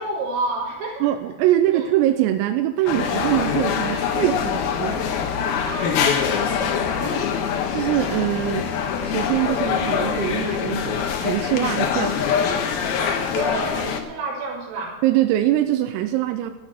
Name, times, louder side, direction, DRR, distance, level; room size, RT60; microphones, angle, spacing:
voice 1, 0.0-1.3 1.7-1.9 5.6-7.3 13.0-15.0, right 2 dB, 70° right, -3 dB, 5.9 m, -30 dB
voice 2, 1.0-5.1 7.7-8.7 9.0-12.2 15.0-16.5, right 13 dB, 90° right, 7 dB, 3.4 m, -23 dB
sound 1, 2.9-14.0, left 7 dB, 75° left, 2.3 m, -24 dB
13.5 x 9.0 x 7.7 m, 1.1 s
omnidirectional pair, 6.0 m